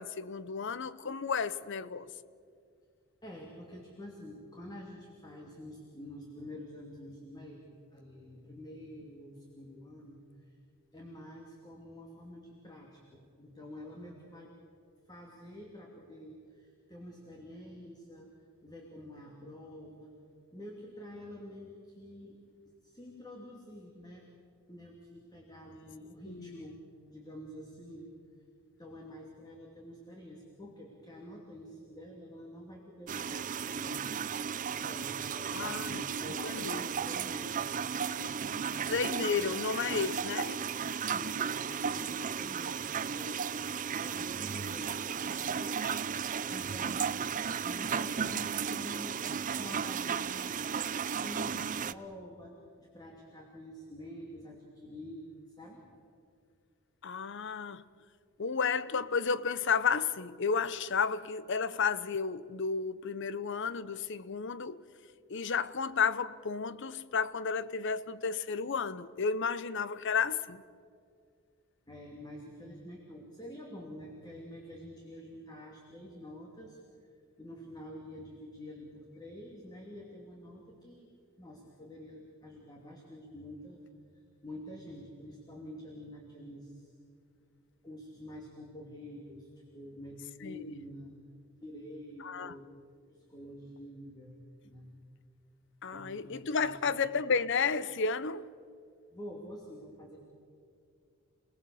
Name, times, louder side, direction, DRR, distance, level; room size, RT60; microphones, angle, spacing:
voice 1, 0.0-2.1 26.3-26.6 35.5-36.0 36.4-36.9 38.9-40.6 57.0-57.8 58.4-64.8 65.3-70.6 90.4-90.7 92.2-92.5 95.8-98.5, left 5 dB, 60° left, 0.7 m, -32 dB
voice 2, 3.2-10.6 10.9-14.5 15.0-18.3 18.6-20.1 20.5-22.4 22.8-24.2 24.7-26.8 27.1-28.1 28.8-33.5 33.8-34.0 34.8-37.7 38.0-38.9 39.3-39.6 41.1-43.4 43.7-46.0 46.5-49.2 49.6-50.6 51.2-55.8 71.9-76.8 77.4-81.1 81.4-83.8 84.1-86.9 87.8-91.1 91.6-92.7 93.1-94.9 95.9-97.0 99.1-100.2, equal, 20° left, 2.8 m, -48 dB
A broken flush in a Bathroom, 33.1-51.9, right 7 dB, 40° right, 0.5 m, -35 dB
29.0 x 19.5 x 7.1 m
head